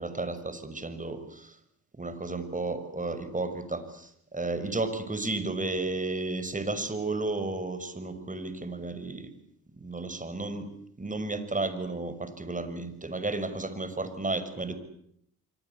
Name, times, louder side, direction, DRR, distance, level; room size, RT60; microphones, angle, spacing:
voice 1, 0.0-1.6 2.0-9.3 9.8-10.7 11.0-14.8, right 2 dB, 20° right, 11 dB, 6.1 m, -33 dB
27.5 x 24.0 x 8.4 m, 0.71 s
supercardioid pair, 60°, 38 cm